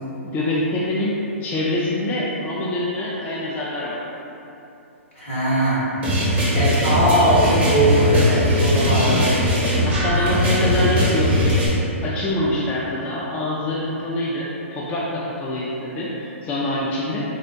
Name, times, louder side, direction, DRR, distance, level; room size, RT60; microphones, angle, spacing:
voice 1, 0.2-4.0 6.4-6.7 9.8-11.6 12.0-17.2, left 1 dB, 20° left, -6 dB, 0.3 m, -25 dB
voice 2, 5.1-5.9 6.5-9.3 10.1-10.4, right 1 dB, 70° left, -9 dB, 1.4 m, -20 dB
sound 1, 6.0-11.7, equal, 15° right, 0.7 m, -20 dB
3.6 x 2.0 x 2.7 m, 2.8 s
hypercardioid pair, 125°, 7 cm